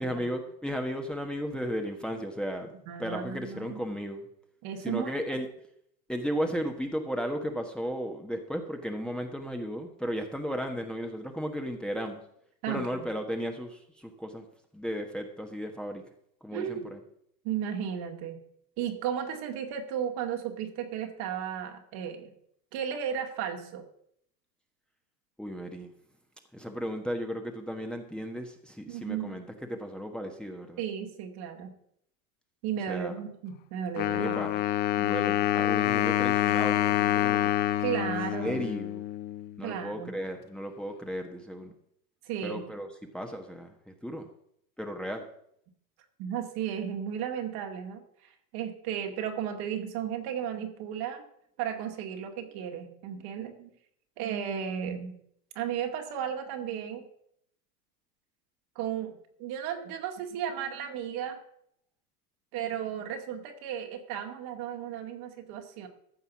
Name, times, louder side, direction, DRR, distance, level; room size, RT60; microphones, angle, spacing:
voice 1, 0.0-2.7 3.0-4.2 4.8-5.5 6.1-12.2 12.7-14.5 14.7-16.0 16.4-17.0 25.4-25.9 26.5-30.8 32.9-33.1 34.1-34.6 35.0-37.5 38.4-39.0 39.6-41.7 42.4-42.9 43.1-44.3 44.8-45.3, equal, ahead, 4 dB, 1.4 m, -35 dB
voice 2, 2.9-3.8 4.6-5.1 12.6-13.1 16.5-16.9 17.4-18.4 18.8-22.3 22.7-23.8 28.9-29.4 30.8-31.8 32.6-34.4 37.8-38.7 39.6-40.1 42.3-42.7 46.2-51.2 51.6-53.7 54.2-55.2 55.6-57.1 58.8-59.1 59.4-61.4 62.5-65.9, right 9 dB, 50° right, 4 dB, 2.2 m, -34 dB
Wind instrument woodwind instrument, 34.0-39.6, left 13 dB, 25° left, 0.3 m, -27 dB
14.5 x 5.6 x 7.2 m, 0.71 s
hypercardioid pair, 90°, 48 cm